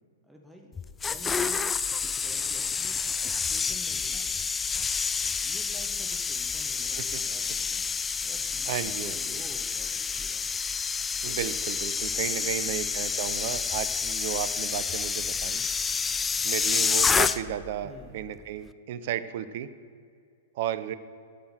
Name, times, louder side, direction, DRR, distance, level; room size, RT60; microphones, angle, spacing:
voice 1, 0.2-0.7 1.1-1.7 2.0-4.3 5.2-7.9 8.2-10.4 11.2-11.4 12.1-13.2 17.8-18.2, equal, ahead, 0 dB, 1.3 m, -50 dB
sound 1, 0.8-17.7 18.0-18.3, left 5 dB, 15° left, 0.3 m, -29 dB
voice 2, 8.7-9.2 11.2-15.6 16.4-19.7 20.5-20.9, right 10 dB, 50° right, 14 dB, 0.5 m, -33 dB
8.4 x 5.6 x 7.7 m, 2.3 s
figure-of-eight pair, 105°, 0 cm